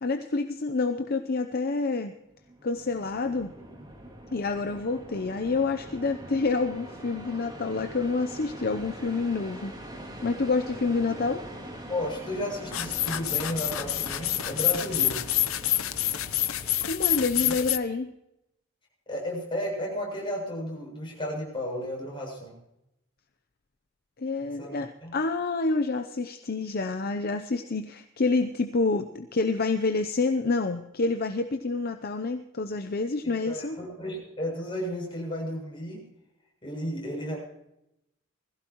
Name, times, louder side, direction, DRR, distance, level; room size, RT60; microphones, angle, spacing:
voice 1, 0.0-2.1 2.6-3.5 4.3-9.7 10.2-11.4 16.8-18.1 24.2-33.8, left 3 dB, 45° left, 7 dB, 0.7 m, -28 dB
sound 1, 2.3-16.8, right 1 dB, 20° right, 2.7 m, -43 dB
voice 2, 11.9-15.2 17.5-17.6 19.1-22.6 24.6-24.8 25.0-25.1 33.2-36.0 36.6-37.4, equal, 25° left, -2 dB, 7.6 m, -33 dB
sound 2, 12.7-17.8, left 13 dB, 80° left, 0.8 m, -27 dB
21.0 x 15.5 x 3.1 m, 0.84 s
head